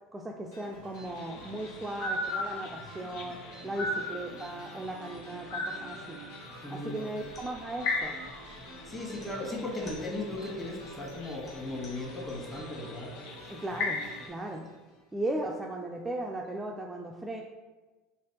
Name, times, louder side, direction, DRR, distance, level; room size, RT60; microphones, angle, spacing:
voice 1, 0.1-3.4 3.6-6.2 6.7-8.1 13.5-14.7 15.1-17.4, right 1 dB, 15° right, 0 dB, 0.3 m, -37 dB
sound 1, 0.5-15.3, right 1 dB, 85° left, 1.4 m, -48 dB
sound 2, 1.1-14.3, left 2 dB, 65° left, 0.5 m, -39 dB
voice 2, 6.6-7.0 8.8-13.1, left 2 dB, 20° left, -2 dB, 1.2 m, -37 dB
sound 3, 7.2-12.6, left 2 dB, 40° left, 1.3 m, -55 dB
3.2 x 3.0 x 2.9 m, 1.2 s
hypercardioid pair, 80°, 0 cm